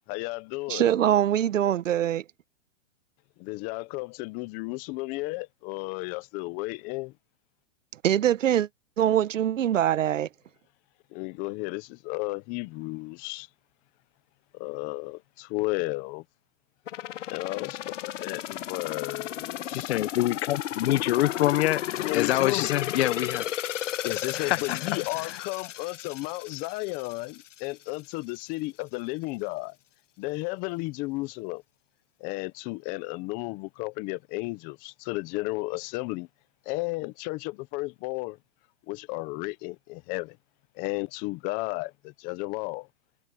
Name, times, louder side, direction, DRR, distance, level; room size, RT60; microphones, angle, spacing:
voice 1, 0.1-0.9 3.4-7.1 11.1-13.5 14.5-16.2 17.3-19.9 22.0-22.7 24.0-29.8 30.2-31.6 32.2-36.3 36.7-38.4 38.9-40.4 40.8-42.9, left 23 dB, 25° left, 0.5 m, -33 dB
voice 2, 0.7-2.2 8.0-8.7 9.0-10.3, right 11 dB, 85° right, 1.2 m, -23 dB
sound 1, 16.9-27.6 28.0-28.1, left 12 dB, 75° left, 1.2 m, -34 dB
voice 3, 19.7-23.5 24.3-25.4, left 15 dB, 60° left, 0.8 m, -26 dB
hypercardioid pair, 145°, 37 cm